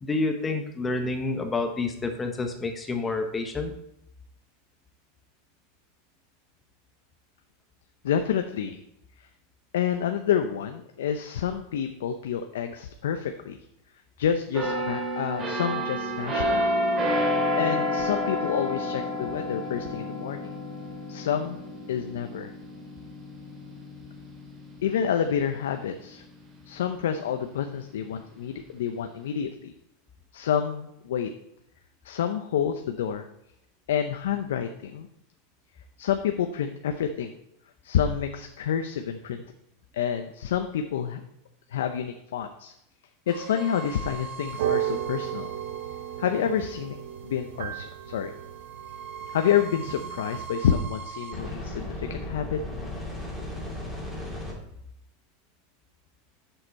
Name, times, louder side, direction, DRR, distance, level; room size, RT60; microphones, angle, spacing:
voice 1, 0.0-3.7, left 3 dB, 15° left, 5 dB, 0.9 m, -28 dB
voice 2, 8.0-8.8 9.7-13.6 14.2-16.6 17.6-20.5 21.1-21.6 21.9-22.5 24.8-26.2 26.6-29.7 30.3-31.3 32.0-33.3 33.9-35.1 36.0-37.3 37.8-39.4 39.9-41.2 41.7-42.7 43.3-45.5 46.2-47.0 47.2-48.3 49.3-52.6, left 8 dB, 85° left, 6 dB, 0.6 m, -28 dB
sound 1, 14.5-26.1 26.5-26.8, equal, 30° right, 2.2 m, -30 dB
sound 2, 43.3-54.5, right 1 dB, ahead, 2.8 m, -39 dB
sound 3, 44.5-50.5, right 12 dB, 80° right, 0.7 m, -34 dB
7.8 x 6.5 x 4.2 m, 0.81 s
supercardioid pair, 125°, 0 cm